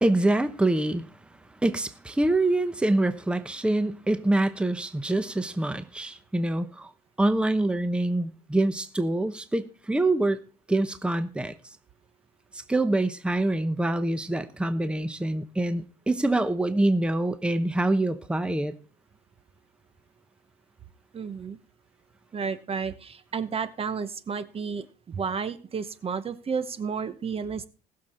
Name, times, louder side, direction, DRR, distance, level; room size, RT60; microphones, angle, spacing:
voice 1, 0.0-1.0 1.6-6.9 7.2-10.4 10.7-11.5 12.5-18.7, right 2 dB, 5° right, 0.9 m, -25 dB
voice 2, 21.1-21.6 22.3-27.7, right 6 dB, 35° right, 0.9 m, -32 dB
19.5 x 6.7 x 4.3 m
cardioid pair, 110°, 17 cm